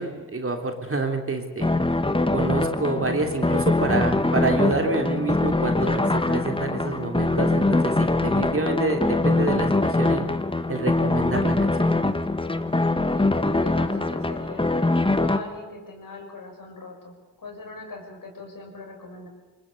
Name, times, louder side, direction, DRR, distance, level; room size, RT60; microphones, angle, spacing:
voice 1, 0.0-1.7 2.3-10.3 10.7-11.9, right 2 dB, 30° right, 4 dB, 3.4 m, -27 dB
sound 1, 1.6-15.4, left 2 dB, 10° left, 1.5 m, -23 dB
voice 2, 13.2-19.3, left 3 dB, 50° left, 3 dB, 6.5 m, -40 dB
21.5 x 19.5 x 8.5 m, 1.2 s
supercardioid pair, 50°, 42 cm